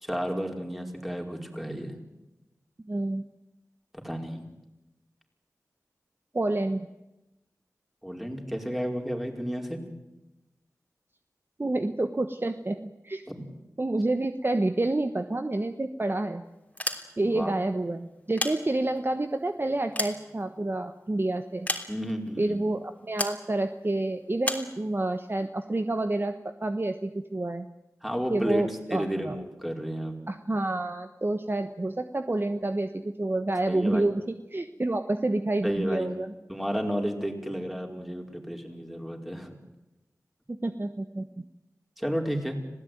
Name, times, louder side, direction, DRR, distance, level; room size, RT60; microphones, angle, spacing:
voice 1, 0.0-2.0 3.9-4.4 8.0-9.8 13.3-13.4 17.2-17.5 21.9-22.6 28.0-30.2 33.7-34.1 35.6-36.2 36.5-39.6 42.0-42.6, equal, 5° right, 2 dB, 4.9 m, -32 dB
voice 2, 2.8-3.2 6.3-6.9 11.6-13.3 13.8-16.4 17.2-21.7 22.4-27.7 28.3-29.4 30.3-36.3 40.6-41.4, right 2 dB, 35° right, 8 dB, 1.2 m, -28 dB
sound 1, 16.6-17.5 18.1-19.1 19.6-20.9 21.7-22.3 23.2-23.5 24.4-24.7, left 1 dB, 20° left, 3.2 m, -33 dB
26.5 x 16.5 x 9.4 m, 0.98 s
cardioid pair, 40°, 6 cm